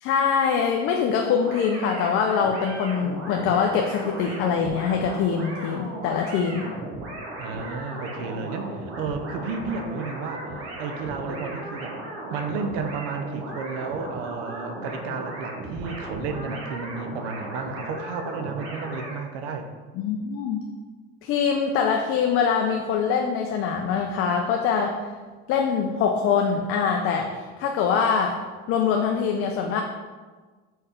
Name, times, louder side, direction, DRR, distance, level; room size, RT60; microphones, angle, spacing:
voice 1, 0.0-6.7 20.0-20.6 21.2-25.1 25.5-28.4 28.7-29.8, left 6 dB, 50° left, 2 dB, 0.6 m, -23 dB
sound 1, 1.4-19.2, right 1 dB, 50° right, 1.4 m, -36 dB
voice 2, 7.4-10.5 10.8-12.0 12.3-19.7, right 4 dB, 90° right, 6 dB, 0.8 m, -32 dB
4.6 x 4.3 x 5.0 m, 1.4 s
cardioid pair, 140°, 29 cm